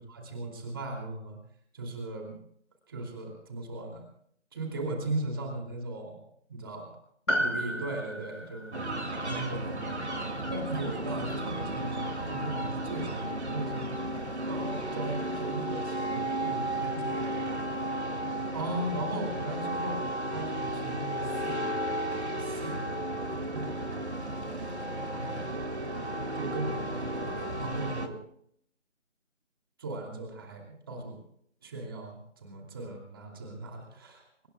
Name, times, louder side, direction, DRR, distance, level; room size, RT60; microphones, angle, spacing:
voice 1, 0.0-1.4 1.7-2.4 2.9-4.0 4.5-6.2 6.5-6.8 7.4-10.2 10.5-13.8 14.5-17.7 18.5-20.0 20.3-21.7 22.2-22.9 23.5-24.1 24.6-24.8 25.1-25.4 26.3-28.2 29.8-31.2 31.6-34.5, right 2 dB, 20° right, 1 dB, 2.8 m, -38 dB
Piano, 7.3-11.9 12.1-12.2, equal, 80° left, 5.9 m, -35 dB
sound 1, 8.7-28.1, right 1 dB, 60° right, 2.5 m, -34 dB
25.0 x 21.5 x 2.3 m, 0.67 s
figure-of-eight pair, 165°, 37 cm